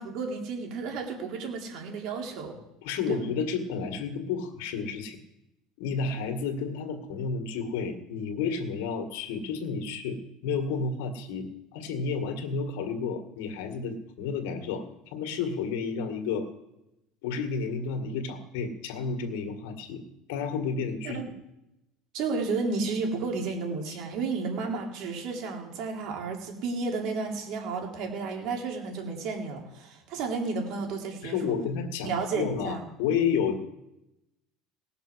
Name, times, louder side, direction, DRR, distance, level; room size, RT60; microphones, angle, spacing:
voice 1, 0.0-2.6 3.1-3.2 21.1-21.2 22.1-31.4 32.0-32.8, right 4 dB, 60° right, 1 dB, 3.3 m, -32 dB
voice 2, 2.8-5.2 5.8-16.5 17.2-20.0 20.3-21.2 23.9-24.0 31.2-33.6, left 5 dB, 80° left, 6 dB, 2.0 m, -31 dB
18.5 x 6.9 x 6.4 m, 0.90 s
cardioid pair, 140°, 0 cm